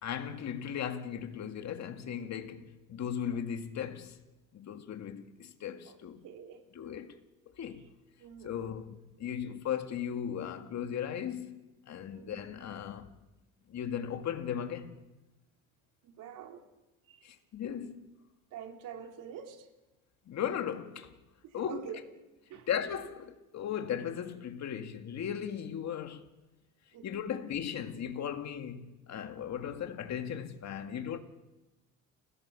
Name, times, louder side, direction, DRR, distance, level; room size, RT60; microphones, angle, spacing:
voice 1, 0.0-4.2 4.5-6.2 6.8-7.2 7.5-7.9 8.4-11.6 11.9-13.1 13.7-15.0 17.2-18.0 20.3-21.1 21.5-21.9 22.7-26.3 27.0-31.2, left 8 dB, 55° left, 2.2 m, -37 dB
voice 2, 6.2-6.6 8.2-8.7 12.1-12.4 16.0-16.6 17.1-17.2 18.5-19.7 21.4-22.0 22.5-22.7 26.9-27.1, right 8 dB, 75° right, 3.5 m, -46 dB
30.0 x 16.5 x 7.1 m
supercardioid pair, 85°, 32 cm